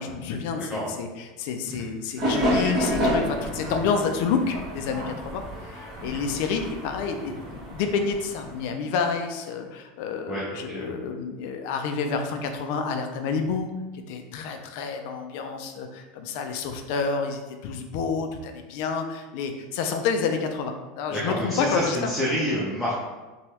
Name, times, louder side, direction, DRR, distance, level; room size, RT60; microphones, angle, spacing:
voice 1, 0.0-13.7 14.1-22.4, left 5 dB, 65° left, 5 dB, 0.4 m, -29 dB
voice 2, 0.6-1.0 1.7-1.8 10.3-11.0 21.1-22.9, equal, 5° left, -8 dB, 0.6 m, -28 dB
sound 1, 2.2-8.7, equal, 35° right, 1.2 m, -29 dB
3.0 x 2.2 x 2.8 m, 1.2 s
supercardioid pair, 125°, 0 cm